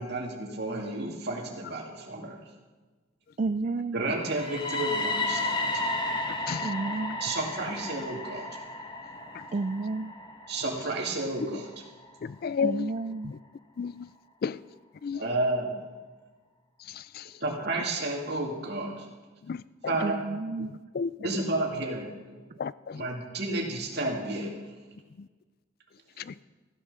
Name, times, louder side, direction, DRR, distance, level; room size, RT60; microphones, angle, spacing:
voice 1, 0.0-2.4 3.9-5.8 7.2-8.5 10.5-11.7 15.1-15.8 17.4-19.1 19.9-20.2 21.2-22.4 22.9-24.5, right 2 dB, 55° right, 2.5 m, -31 dB
voice 2, 3.4-4.0 6.6-7.2 9.5-10.1 12.6-13.3 20.0-20.7, right 3 dB, 40° right, 0.4 m, -31 dB
sound 1, 4.2-12.1, left 2 dB, 25° left, 1.4 m, -33 dB
voice 3, 12.2-12.9 13.2-13.4 13.8-14.1 14.4-14.6 15.0-15.2 17.2-17.3 19.5-19.6 20.9-21.1 22.6-23.0 26.3-26.4, left 6 dB, 50° left, 0.3 m, -31 dB
15.0 x 10.5 x 6.8 m
head